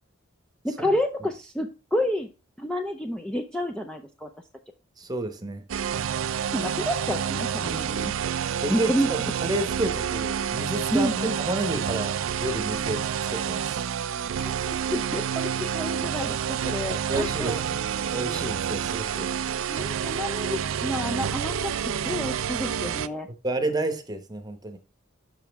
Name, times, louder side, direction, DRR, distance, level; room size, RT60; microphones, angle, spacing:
voice 1, 0.6-2.3 2.6-4.3 6.5-8.1 8.7-9.3 10.9-11.4 14.4-17.6 19.7-21.7 22.0-23.3, equal, 5° left, 0.4 m, -29 dB
voice 2, 5.0-5.6 8.6-11.1 11.4-13.0 13.3-13.8 16.9-17.8 18.1-19.3 23.4-24.8, right 2 dB, 20° right, 1.0 m, -30 dB
sound 1, 5.7-23.1, right 8 dB, 70° right, 0.4 m, -29 dB
7.3 x 5.7 x 3.4 m
head